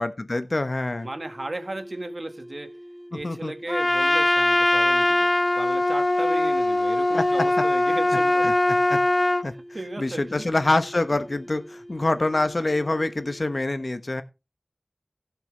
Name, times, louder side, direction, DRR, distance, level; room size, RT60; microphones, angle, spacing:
voice 1, 0.0-1.1 3.1-3.5 7.1-7.2 8.4-9.0 9.4-9.5 10.0-14.2, left 2 dB, 55° left, 1.0 m, -26 dB
sound 1, 0.9-13.6, equal, 5° right, 1.2 m, -45 dB
voice 2, 1.0-2.7 3.1-5.3 5.6-8.8 9.7-10.4, right 2 dB, 55° right, 1.5 m, -35 dB
Trumpet, 3.7-9.5, left 1 dB, 35° left, 0.5 m, -21 dB
16.0 x 5.9 x 3.3 m
wide cardioid pair, 50°, 0 cm